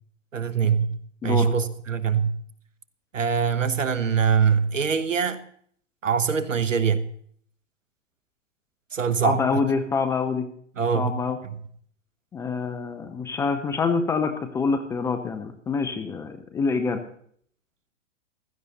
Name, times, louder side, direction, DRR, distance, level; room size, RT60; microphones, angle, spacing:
voice 1, 0.3-1.0 1.2-2.3 3.1-5.4 6.0-7.0 8.9-9.6 10.8-11.1 11.4-11.6, right 6 dB, 85° right, 15 dB, 1.1 m, -23 dB
voice 2, 1.2-1.5 9.2-10.5 10.9-11.4 12.3-17.0, left 5 dB, 10° left, 8 dB, 0.4 m, -26 dB
15.5 x 13.0 x 4.0 m, 0.62 s
figure-of-eight pair, 115°, 37 cm